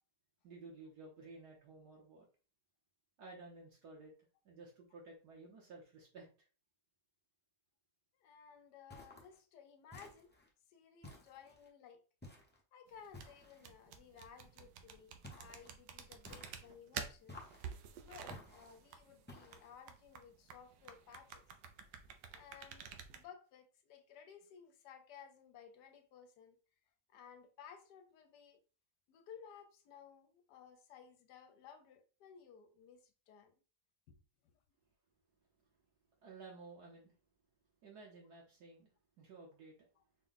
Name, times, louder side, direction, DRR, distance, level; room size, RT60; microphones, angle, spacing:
voice 1, 0.4-2.2 3.2-4.1 4.4-6.5 36.2-37.1 37.8-38.9 39.2-39.9, right 3 dB, 70° right, 1.4 m, -54 dB
voice 2, 8.2-10.3 10.7-12.0 12.7-17.4 18.0-21.4 22.3-26.6 27.1-28.6 29.1-33.5 34.1-34.2 40.0-40.1, left 7 dB, 75° left, 1.2 m, -58 dB
sound 1, 8.9-9.4 9.9-10.5 11.0-11.7 12.2-12.6 13.1-13.7 15.2-15.7 16.2-16.8 17.3-17.8 18.3-18.8 19.3-19.8, left 1 dB, 10° left, 0.5 m, -55 dB
sound 2, 12.9-23.2, right 7 dB, 90° right, 1.3 m, -50 dB
4.5 x 2.2 x 3.9 m
omnidirectional pair, 1.9 m